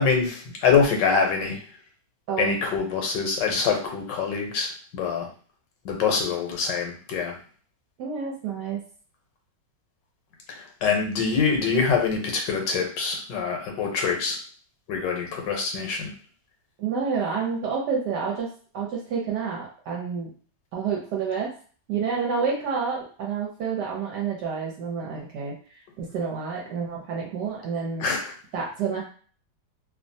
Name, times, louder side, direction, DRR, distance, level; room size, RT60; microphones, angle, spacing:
voice 1, 0.0-1.6 2.4-5.3 5.8-7.3 10.5-14.4 14.9-16.1 28.0-28.3, left 5 dB, 90° left, 2 dB, 1.4 m, -25 dB
voice 2, 8.0-8.8 16.8-18.5 18.7-20.3 20.7-21.5 21.9-25.5 26.0-28.0 28.5-29.0, right 6 dB, 75° right, -3 dB, 1.2 m, -29 dB
3.1 x 2.2 x 2.6 m, 0.42 s
omnidirectional pair, 1.9 m